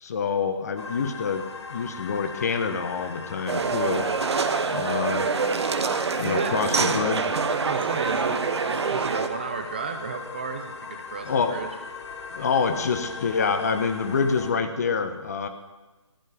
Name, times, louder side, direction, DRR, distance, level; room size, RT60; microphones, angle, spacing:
voice 1, 0.0-1.4 1.7-4.1 4.7-5.3 6.2-7.3 11.3-11.6 12.3-15.5, left 5 dB, 30° left, 9 dB, 0.9 m, -26 dB
sound 1, 0.8-14.5, left 4 dB, 60° left, 1.4 m, -39 dB
sound 2, 3.5-9.3, right 5 dB, 60° right, 1.0 m, -25 dB
voice 2, 6.2-6.9 7.5-11.7, right 5 dB, 20° right, 6 dB, 0.5 m, -33 dB
13.0 x 5.4 x 9.3 m, 1.2 s
hypercardioid pair, 170°, 16 cm